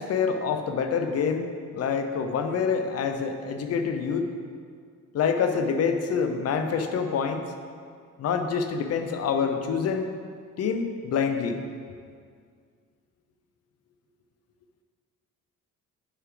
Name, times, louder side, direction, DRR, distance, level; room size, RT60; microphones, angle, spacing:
voice 1, 0.0-4.3 5.1-7.4 8.2-10.1 10.6-11.6, left 6 dB, 50° left, 7 dB, 0.8 m, -26 dB
9.4 x 6.8 x 3.8 m, 2.1 s
cardioid pair, 145°, 32 cm